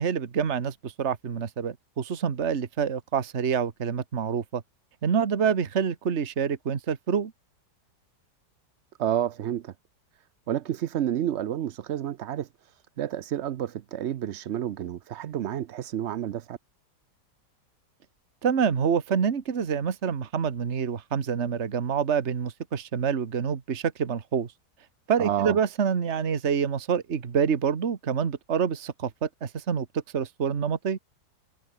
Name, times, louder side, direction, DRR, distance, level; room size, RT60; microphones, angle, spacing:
voice 1, 0.0-4.6 5.0-7.3 18.4-24.5 25.1-29.9 30.1-31.0, right 7 dB, 40° right, 1.6 m, -27 dB
voice 2, 9.0-9.7 10.5-12.5 13.0-16.6 25.2-25.6, right 11 dB, 60° right, 0.7 m, -30 dB
omnidirectional pair, 1.8 m